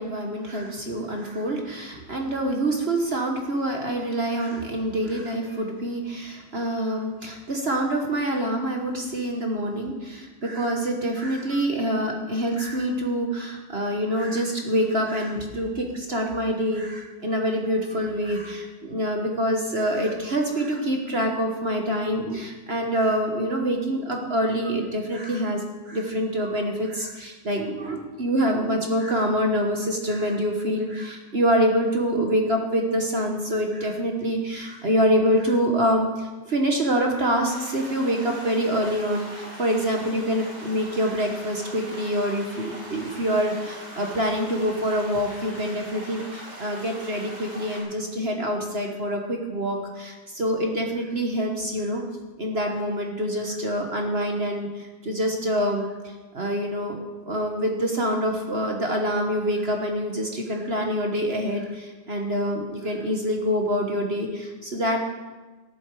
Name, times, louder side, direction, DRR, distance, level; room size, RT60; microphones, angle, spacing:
voice 1, 0.0-52.0 52.4-65.0, equal, 35° right, 2 dB, 1.1 m, -26 dB
sound 1, 37.5-47.8, right 1 dB, 65° right, 5.0 m, -41 dB
14.0 x 10.5 x 4.7 m, 1.2 s
omnidirectional pair, 2.3 m